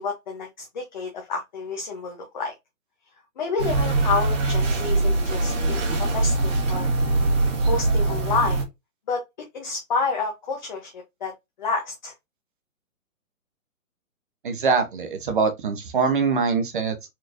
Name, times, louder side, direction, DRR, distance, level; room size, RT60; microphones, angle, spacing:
voice 1, 0.0-2.5 3.4-6.9 7.6-8.6 9.1-9.2 9.5-10.9 11.2-11.3 11.6-12.1, left 4 dB, 30° left, 0.8 m, -29 dB
sound 1, 3.6-8.6, right 2 dB, 55° right, 2.0 m, -22 dB
voice 2, 14.4-17.1, right 5 dB, 35° right, 0.8 m, -23 dB
4.4 x 3.1 x 2.5 m
hypercardioid pair, 165°, 43 cm